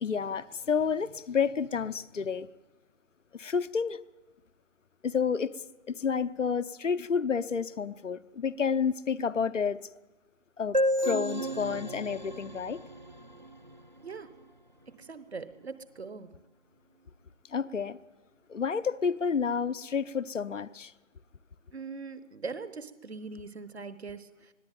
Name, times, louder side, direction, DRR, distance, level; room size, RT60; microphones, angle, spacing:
voice 1, 0.0-2.5 3.4-4.0 5.0-5.5 6.0-9.8 10.6-10.8 11.0-12.8 17.5-18.0 18.5-20.9, left 6 dB, 85° left, 16 dB, 0.8 m, -30 dB
sound 1, 10.7-14.3, equal, 40° right, 0.7 m, -32 dB
voice 2, 14.0-14.3 15.0-16.3 21.7-24.5, right 4 dB, 60° right, 13 dB, 1.1 m, -41 dB
22.0 x 14.5 x 9.2 m, 1.2 s
figure-of-eight pair, 180°, 36 cm